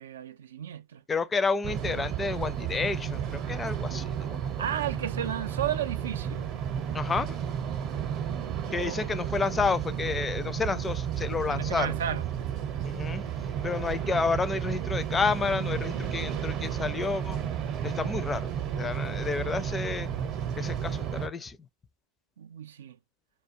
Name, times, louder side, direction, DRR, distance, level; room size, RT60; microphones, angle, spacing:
voice 1, 0.0-1.0 4.6-6.5 8.6-9.1 11.5-12.3 22.4-23.0, right 10 dB, 85° right, 0.3 m, -33 dB
voice 2, 1.1-4.4 6.9-7.4 8.7-11.9 12.8-13.2 13.6-17.4 17.8-18.5 18.8-20.1 20.6-21.6, left 4 dB, 20° left, 0.4 m, -30 dB
sound 1, 1.6-21.3, right 8 dB, 45° right, 0.7 m, -32 dB
2.3 x 2.2 x 2.6 m
hypercardioid pair, 110°, 0 cm